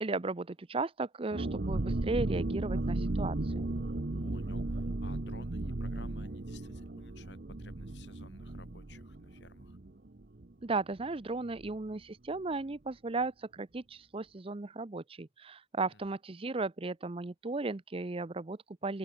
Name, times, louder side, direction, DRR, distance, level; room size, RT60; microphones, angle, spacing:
voice 1, 0.0-3.7 10.6-19.0, right 3 dB, 30° right, 0.6 m, -36 dB
sound 1, 1.3-10.7 11.0-11.1 11.4-11.7, right 2 dB, 55° right, 0.9 m, -35 dB
voice 2, 4.2-9.8 15.9-16.0, left 3 dB, 75° left, 3.0 m, -56 dB
head